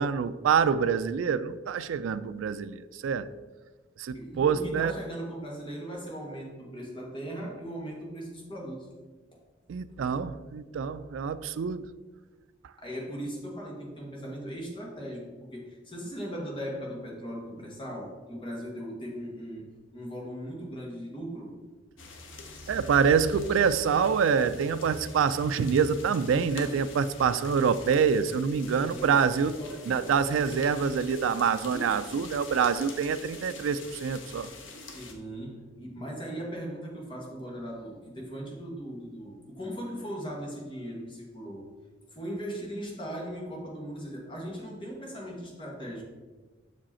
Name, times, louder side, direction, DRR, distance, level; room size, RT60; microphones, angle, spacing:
voice 1, 0.0-3.3 4.0-4.9 9.7-11.9 22.7-29.5 29.9-34.5, right 6 dB, 90° right, 12 dB, 0.3 m, -26 dB
voice 2, 4.1-8.9 9.3-9.4 12.8-21.6 28.7-29.2 29.6-30.0 34.9-41.7 42.1-46.0, equal, 25° left, -2 dB, 1.6 m, -38 dB
sound 1, 22.0-35.1, left 2 dB, 85° left, 0.9 m, -44 dB
6.3 x 5.0 x 4.3 m, 1.3 s
head